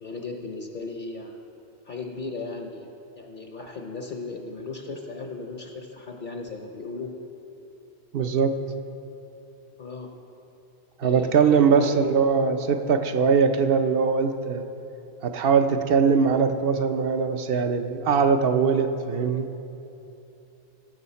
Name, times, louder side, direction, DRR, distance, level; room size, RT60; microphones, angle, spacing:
voice 1, 0.0-1.4 1.8-2.9 3.1-7.1 9.8-10.1 11.0-12.0, left 3 dB, 50° left, 2 dB, 0.8 m, -36 dB
voice 2, 8.1-8.6 11.0-14.6 15.2-19.5, right 6 dB, 65° right, 8 dB, 0.7 m, -21 dB
16.5 x 6.3 x 4.2 m, 2.8 s
omnidirectional pair, 1.2 m